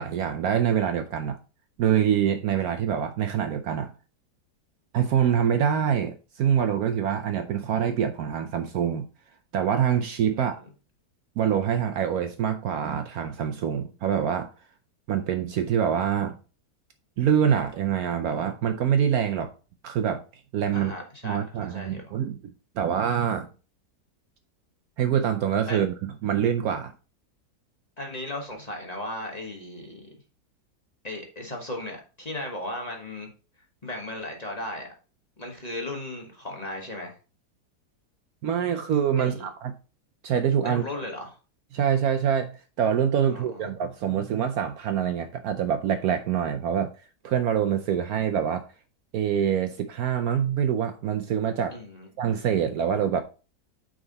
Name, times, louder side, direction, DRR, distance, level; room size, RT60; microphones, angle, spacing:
voice 1, 0.0-1.4 1.8-3.9 4.9-9.1 9.5-10.6 11.4-14.5 15.1-16.4 17.2-19.5 19.8-20.2 20.5-20.9 21.2-23.5 25.0-26.9 38.4-39.8 40.2-40.8 41.7-46.9 47.2-48.7 49.1-51.8 52.2-53.2, right 8 dB, 70° right, 1.0 m, -25 dB
voice 2, 20.7-22.1 25.7-25.8 28.0-30.1 31.0-33.3 33.8-34.9 35.4-37.1 39.2-39.4 40.6-41.3 43.2-43.7 51.7-52.1, left 1 dB, 25° left, 1.2 m, -36 dB
8.9 x 3.8 x 4.0 m
omnidirectional pair, 1.9 m